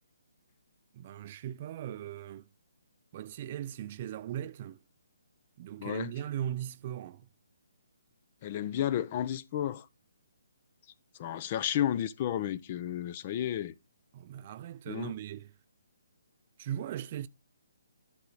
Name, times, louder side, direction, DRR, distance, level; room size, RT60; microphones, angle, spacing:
voice 1, 0.9-2.5 3.1-4.8 5.6-7.3 14.1-15.5 16.6-17.3, right 11 dB, 40° right, 0.5 m, -38 dB
voice 2, 5.8-6.1 8.4-9.9 11.2-13.7 14.9-15.1, left 11 dB, 35° left, 0.5 m, -32 dB
11.0 x 3.9 x 4.9 m
hypercardioid pair, 145°, 0 cm